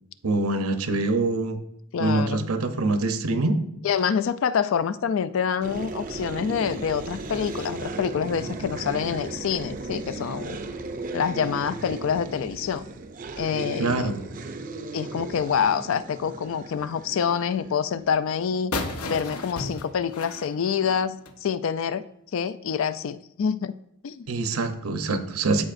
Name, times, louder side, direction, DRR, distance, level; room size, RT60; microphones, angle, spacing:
voice 1, 0.2-1.6 2.0-3.6 13.8-14.2 24.3-25.6, right 3 dB, 80° right, 7 dB, 0.8 m, -24 dB
voice 2, 1.9-2.5 3.8-10.6 11.1-12.8 13.4-14.1 14.9-18.7 19.1-22.1 22.3-23.7 24.0-24.3, left 7 dB, 60° left, 14 dB, 0.3 m, -26 dB
sound 1, 5.6-18.5, right 3 dB, 40° right, 0.5 m, -36 dB
sound 2, 18.7-21.4, left 2 dB, 80° left, 0.8 m, -33 dB
14.0 x 4.9 x 2.6 m, 0.74 s
head